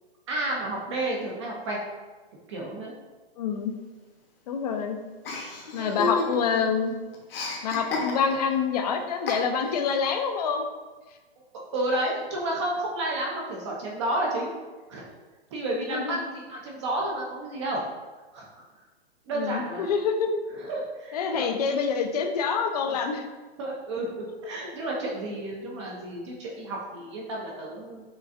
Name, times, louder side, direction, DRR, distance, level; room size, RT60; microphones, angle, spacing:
voice 1, 0.3-1.8 2.5-2.9 5.8-6.2 11.7-14.5 14.9-15.0 15.5-17.8 18.3-18.6 19.3-19.9 20.6-21.5 22.9-23.0 23.6-28.0, right 1 dB, 25° right, -2 dB, 0.4 m, -31 dB
voice 2, 3.4-3.7 4.5-5.0 5.7-6.9 7.6-10.6 15.7-16.2 19.3-20.3 21.1-23.3, left 6 dB, 40° left, 5 dB, 0.4 m, -26 dB
Chuckle chortle, 5.2-6.6 6.9-8.5 9.3-9.8, left 3 dB, 55° left, 1.0 m, -32 dB
5.0 x 2.3 x 2.5 m, 1.3 s
hypercardioid pair, 140°, 33 cm